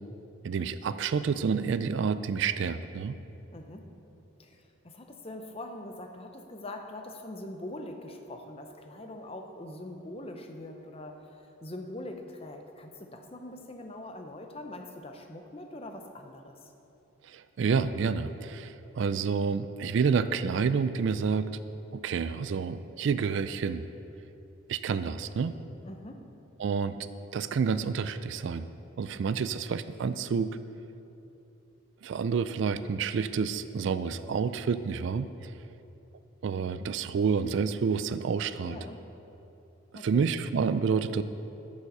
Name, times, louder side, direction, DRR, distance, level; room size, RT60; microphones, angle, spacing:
voice 1, 0.4-3.2 17.2-21.5 21.9-23.9 24.7-25.6 26.6-27.1 27.3-28.7 29.0-30.6 32.0-35.5 36.4-38.8 39.9-41.2, right 5 dB, 55° right, 13 dB, 0.3 m, -29 dB
voice 2, 3.5-3.9 4.4-11.2 11.6-16.7 25.8-26.2 38.7-39.0 39.9-40.3, left 1 dB, 25° left, 4 dB, 0.7 m, -43 dB
8.9 x 7.2 x 6.7 m, 2.9 s
head